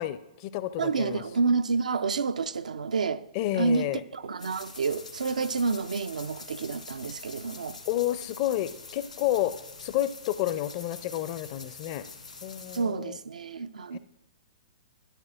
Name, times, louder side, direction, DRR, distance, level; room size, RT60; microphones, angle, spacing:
voice 1, 0.0-1.2 3.3-4.0 7.9-9.5 9.8-12.0 12.4-13.2 13.9-14.0, left 13 dB, 40° left, 0.5 m, -30 dB
voice 2, 0.8-3.2 3.5-7.8 12.7-14.0, right 4 dB, 75° right, 0.4 m, -29 dB
sound 1, 4.4-12.8, left 4 dB, 85° left, 2.0 m, -45 dB
12.5 x 9.8 x 2.5 m
figure-of-eight pair, 115°, 4 cm